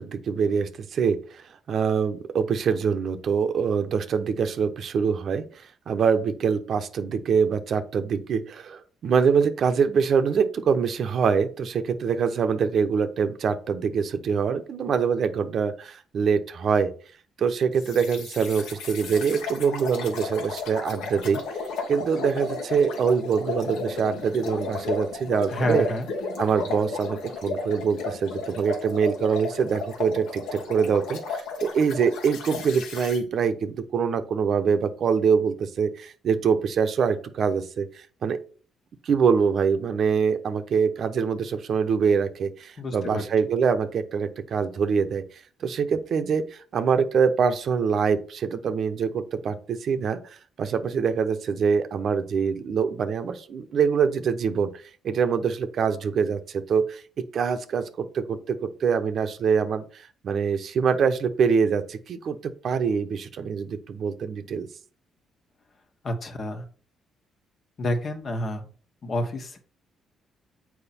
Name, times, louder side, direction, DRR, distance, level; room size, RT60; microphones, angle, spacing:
voice 1, 0.0-16.9 17.4-21.4 21.9-25.9 26.4-38.4 39.0-45.2 45.6-54.7 55.0-57.0 57.3-64.7, right 6 dB, 60° right, 9 dB, 0.8 m, -24 dB
sound 1, 17.8-33.2, left 4 dB, 90° left, 1.5 m, -34 dB
voice 2, 25.5-26.1 42.8-43.2 66.0-66.6 67.8-68.6 69.0-69.6, left 1 dB, 45° left, 6 dB, 1.4 m, -29 dB
7.1 x 4.6 x 4.3 m, 0.40 s
cardioid pair, 90°, 0 cm